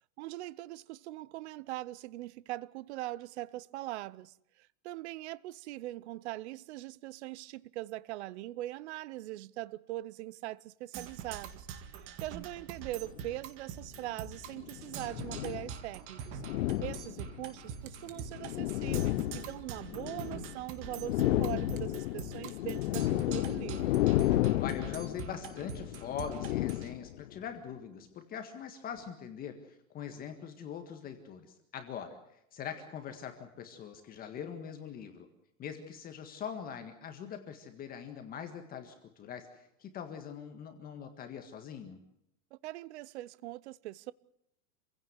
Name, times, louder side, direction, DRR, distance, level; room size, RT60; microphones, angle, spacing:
voice 1, 0.2-11.7 11.9-16.4 16.8-24.0 42.5-44.1, right 16 dB, 50° right, 0.8 m, -41 dB
Percussion, 10.9-26.9, right 8 dB, 30° right, 2.1 m, -45 dB
sound 1, 13.1-13.3 14.3-15.8 16.3-17.5 18.1-20.6 20.8-27.4, left 16 dB, 60° left, 0.8 m, -32 dB
sound 2, 17.4-19.0 21.0-23.3, right 9 dB, 65° right, 2.7 m, -60 dB
voice 2, 24.6-35.3 35.6-42.0, left 8 dB, 20° left, 1.8 m, -42 dB
27.5 x 16.5 x 8.0 m
supercardioid pair, 165°, 43 cm